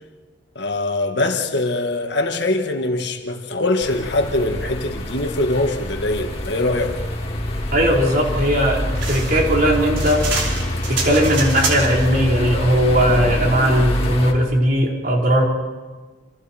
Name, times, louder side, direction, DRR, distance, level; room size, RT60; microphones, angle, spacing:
voice 1, 0.6-7.0, left 2 dB, 60° left, 3 dB, 2.0 m, -22 dB
sound 1, 3.8-14.3, left 1 dB, 30° left, 2.7 m, -26 dB
voice 2, 7.7-10.3 10.9-15.4, equal, 45° right, -1 dB, 4.3 m, -18 dB
sound 2, 8.9-12.1, right 4 dB, 70° right, 5.1 m, -27 dB
28.5 x 27.5 x 4.5 m, 1.3 s
head